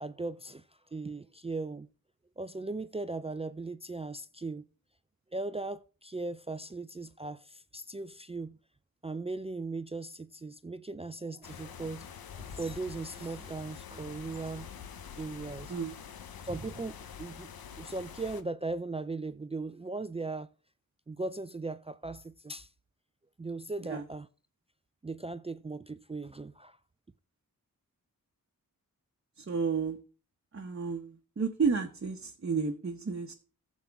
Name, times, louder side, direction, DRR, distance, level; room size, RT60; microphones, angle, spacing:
voice 1, 0.0-1.9 2.4-4.6 5.3-8.6 9.0-12.1 12.3-14.7 15.2-15.8 16.4-17.5 17.8-20.5 21.1-22.7 23.4-24.3 25.0-26.8, right 3 dB, 20° right, 0.4 m, -38 dB
sound 1, 11.4-18.4, left 7 dB, 85° left, 0.9 m, -46 dB
voice 2, 29.4-30.0 30.5-33.3, right 5 dB, 40° right, 0.9 m, -32 dB
14.5 x 7.3 x 3.5 m
wide cardioid pair, 95°, 35 cm